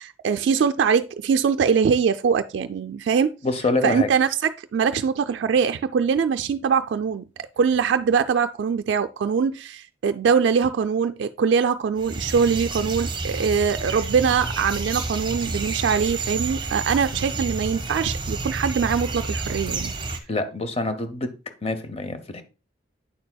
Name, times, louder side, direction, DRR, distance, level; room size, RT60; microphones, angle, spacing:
voice 1, 0.0-3.3 3.8-7.2 7.6-19.9, right 6 dB, 65° right, 0.3 m, -22 dB
voice 2, 3.4-4.1 20.3-21.3 21.6-22.4, left 2 dB, 30° left, 0.7 m, -26 dB
sound 1, 12.0-20.2, right 3 dB, 25° right, 0.9 m, -30 dB
8.6 x 6.8 x 2.2 m
head